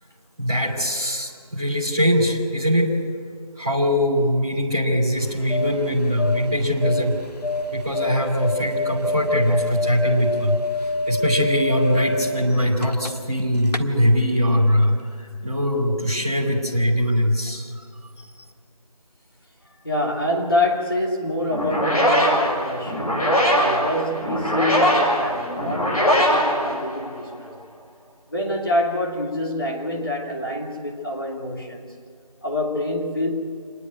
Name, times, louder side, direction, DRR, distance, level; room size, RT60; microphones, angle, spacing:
voice 1, 0.4-3.0 3.6-7.2 7.7-10.6 11.1-17.7, equal, 5° right, -9 dB, 1.5 m, -21 dB
sound 1, 5.2-13.4 13.7-13.8, left 1 dB, 90° left, 1.5 m, -27 dB
voice 2, 19.8-27.6 28.3-31.8 32.4-33.3, left 1 dB, 35° left, -1 dB, 2.8 m, -26 dB
sound 2, 21.5-27.3, equal, 70° left, 6.6 m, -21 dB
27.5 x 10.5 x 9.3 m, 2.2 s
figure-of-eight pair, 175°, 20 cm